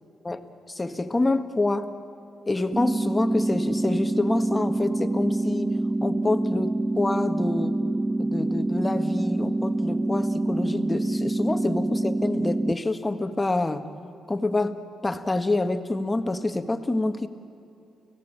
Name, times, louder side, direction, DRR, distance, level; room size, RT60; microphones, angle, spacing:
voice 1, 0.2-1.9 2.5-7.8 8.2-13.8 14.3-17.3, left 2 dB, 20° left, 9 dB, 1.6 m, -27 dB
sound 1, 2.7-12.7, right 2 dB, 20° right, 0.5 m, -26 dB
29.5 x 17.0 x 8.9 m, 2.7 s
cardioid pair, 75°, 0 cm